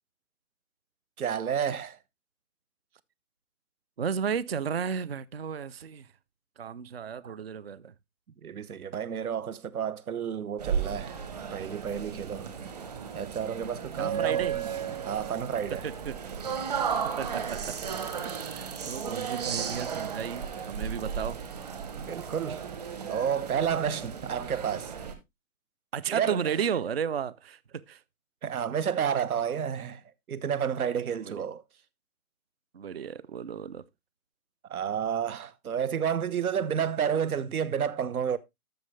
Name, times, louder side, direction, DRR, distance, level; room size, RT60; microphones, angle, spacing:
voice 1, 1.2-2.0 7.2-7.4 8.4-11.2 11.5-12.5 13.1-14.7 15.0-15.9 22.1-22.6 23.1-24.9 26.1-26.5 28.4-30.0 30.3-31.6 34.7-38.4, right 8 dB, 85° right, 1.1 m, -30 dB
voice 2, 4.0-6.1 6.6-7.9 13.9-14.6 15.7-16.2 17.2-17.8 18.2-21.4 25.9-28.0 31.1-31.4 32.7-33.8, right 7 dB, 45° right, 0.4 m, -33 dB
sound 1, 10.6-25.1, right 7 dB, 30° right, 1.1 m, -34 dB
13.0 x 6.4 x 3.2 m
hypercardioid pair, 175°, 42 cm